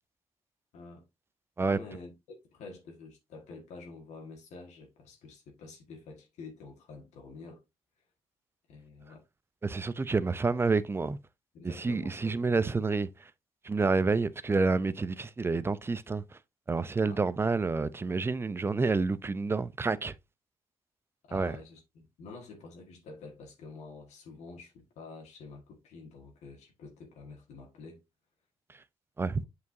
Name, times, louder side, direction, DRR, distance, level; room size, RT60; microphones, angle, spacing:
voice 1, 0.7-1.0 1.6-7.6 8.7-9.2 11.5-12.4 17.0-17.2 21.2-28.0, left 3 dB, 90° left, 1.7 m, -48 dB
voice 2, 9.6-11.2 11.6-13.3 13.6-16.4 16.7-20.1 21.3-21.5 29.2-29.4, right 4 dB, 20° right, 0.5 m, -29 dB
8.2 x 4.8 x 2.6 m
cardioid pair, 110°, 11 cm